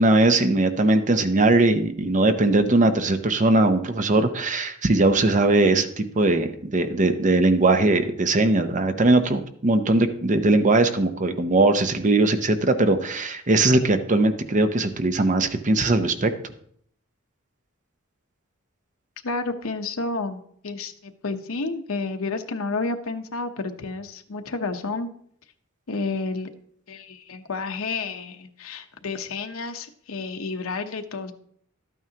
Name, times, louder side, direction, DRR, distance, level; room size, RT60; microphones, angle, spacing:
voice 1, 0.0-16.3, right 2 dB, 35° right, 9 dB, 0.7 m, -20 dB
voice 2, 19.2-25.1 25.9-26.5 26.9-31.3, left 3 dB, 75° left, 6 dB, 0.9 m, -30 dB
12.5 x 9.1 x 2.9 m, 0.66 s
head